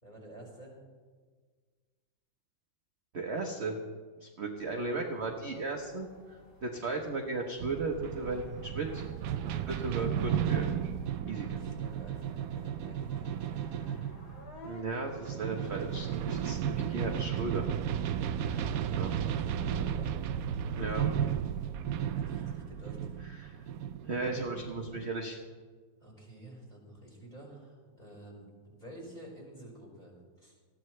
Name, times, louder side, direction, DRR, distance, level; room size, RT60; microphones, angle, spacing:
voice 1, 0.0-0.8 11.5-14.0 18.8-20.1 22.1-23.1 26.0-30.6, right 1 dB, 20° left, -2 dB, 5.0 m, -50 dB
voice 2, 3.1-3.8 4.2-9.0 9.4-10.6 11.3-11.6 14.6-17.6 18.4-18.7 18.9-19.1 20.7-21.1 23.4-23.6 24.0-25.4, right 3 dB, 40° right, 2 dB, 1.1 m, -36 dB
sound 1, 4.6-14.8, left 1 dB, 60° left, 2.8 m, -56 dB
sound 2, 7.6-25.1, right 9 dB, 75° right, 0.8 m, -34 dB
20.0 x 14.5 x 3.2 m, 1.5 s
omnidirectional pair, 2.0 m